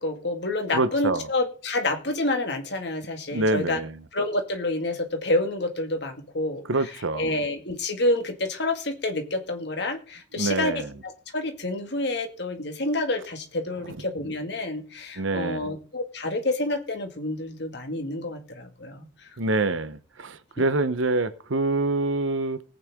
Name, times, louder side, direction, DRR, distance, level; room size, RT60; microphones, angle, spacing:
voice 1, 0.0-3.8 4.1-6.6 7.1-19.1, left 2 dB, 60° left, 2.1 m, -28 dB
voice 2, 0.7-1.3 3.3-4.0 6.6-7.5 10.3-10.9 13.9-14.0 15.2-15.7 19.4-22.6, right 2 dB, 85° right, 0.9 m, -26 dB
20.0 x 8.9 x 3.7 m
head